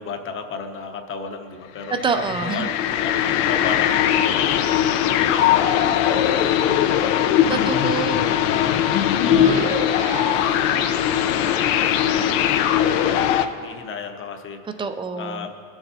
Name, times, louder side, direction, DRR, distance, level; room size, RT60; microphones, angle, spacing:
voice 1, 0.0-2.0 2.4-4.9 5.2-7.7 8.4-8.8 9.1-9.6 10.2-12.5 12.8-14.6 15.2-15.5, left 5 dB, 30° left, 6 dB, 0.8 m, -34 dB
sound 1, 1.8-13.5, left 10 dB, 70° left, 0.6 m, -20 dB
voice 2, 1.9-2.7 7.5-8.4 14.8-15.5, right 5 dB, 15° right, 8 dB, 0.3 m, -26 dB
sound 2, 9.3-13.6, right 7 dB, 70° right, 0.9 m, -34 dB
19.0 x 7.1 x 2.7 m, 2.1 s
supercardioid pair, 120°, 38 cm